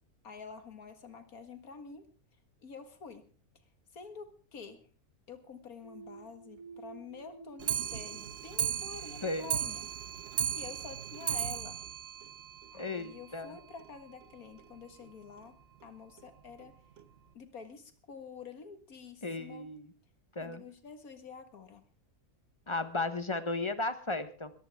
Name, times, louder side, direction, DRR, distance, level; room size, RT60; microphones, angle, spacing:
voice 1, 0.2-2.1 2.6-3.3 3.9-4.8 5.3-9.8 10.2-10.3 10.5-11.8 12.7-15.6 15.8-16.8 17.3-19.7 20.4-21.9, left 5 dB, 70° left, 8 dB, 2.2 m, -48 dB
sound 1, 5.8-9.5, right 4 dB, 70° right, 1.7 m, -53 dB
Clock, 7.6-13.1 13.4-13.5 13.8-13.9 14.2-14.3 14.6-14.7 15.4-15.5 16.2-16.3 17.0-17.1, right 9 dB, 50° right, 1.0 m, -36 dB
voice 2, 9.2-9.5 12.7-13.5 19.2-19.9 20.3-20.6 22.7-24.5, left 2 dB, 20° left, 11 dB, 1.0 m, -35 dB
20.5 x 14.5 x 3.5 m, 0.39 s
omnidirectional pair, 1.6 m